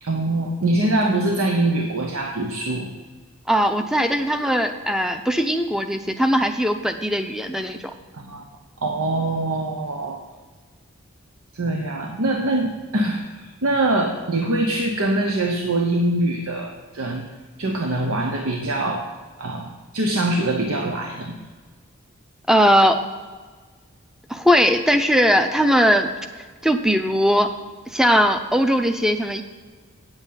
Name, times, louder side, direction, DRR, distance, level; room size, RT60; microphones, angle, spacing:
voice 1, 0.0-2.9 8.1-8.4 8.8-10.2 11.5-17.3 17.6-19.1 19.4-21.4, right 2 dB, 85° right, 3 dB, 0.9 m, -23 dB
voice 2, 3.5-7.8 22.5-23.0 24.3-26.1 26.6-27.5 27.9-29.4, equal, ahead, 7 dB, 0.6 m, -19 dB
8.8 x 8.0 x 5.7 m, 1.4 s
head